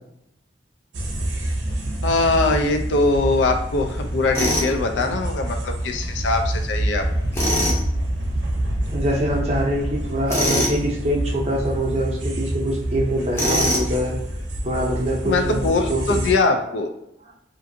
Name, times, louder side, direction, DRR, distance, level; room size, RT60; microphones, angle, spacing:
sound 1, 0.9-16.3, right 1 dB, 75° right, 0.6 m, -27 dB
voice 1, 2.0-7.0 15.2-16.9, left 3 dB, 80° left, 5 dB, 0.4 m, -22 dB
Tools, 4.3-4.7 7.3-7.8 10.3-10.8 13.3-13.9, equal, 15° left, 0.6 m, -22 dB
voice 2, 8.9-14.2 14.6-16.2, equal, 35° right, -2 dB, 0.6 m, -24 dB
2.5 x 2.5 x 2.6 m, 0.81 s
head